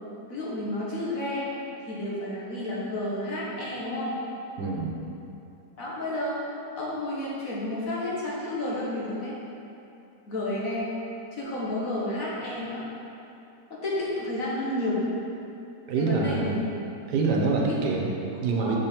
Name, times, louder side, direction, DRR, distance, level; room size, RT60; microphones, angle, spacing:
voice 1, 0.3-1.5 1.9-4.1 5.8-6.4 6.8-9.3 10.3-10.9 11.3-12.8 13.8-15.1 16.0-16.7 17.6-17.9 18.5-18.7, left 1 dB, 55° left, -6 dB, 1.7 m, -31 dB
voice 2, 4.6-5.0 15.9-16.6 17.1-18.8, right 4 dB, 85° right, -1 dB, 1.4 m, -26 dB
6.3 x 5.2 x 4.4 m, 2.8 s
omnidirectional pair, 1.8 m